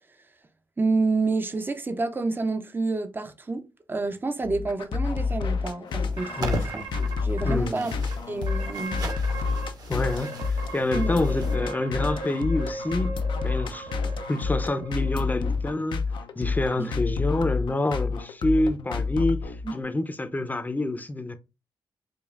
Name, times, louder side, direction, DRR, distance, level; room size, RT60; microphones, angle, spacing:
voice 1, 0.8-6.8 7.2-7.9 8.3-9.0 10.9-11.2 16.8-16.9 19.6-19.7, right 3 dB, 25° right, 0.6 m, -28 dB
sound 1, 4.4-19.8, left 4 dB, 65° left, 0.6 m, -29 dB
sound 2, 5.9-11.6, right 3 dB, 45° right, 1.1 m, -39 dB
sound 3, 6.2-7.5 8.0-8.1 8.5-9.7 10.0-15.2, right 3 dB, 70° right, 1.3 m, -38 dB
voice 2, 6.4-6.7 7.4-7.9 9.9-13.1 13.4-13.9 14.3-16.0 16.4-21.4, left 2 dB, 20° left, 0.7 m, -27 dB
5.2 x 2.4 x 2.4 m
supercardioid pair, 55°, 9 cm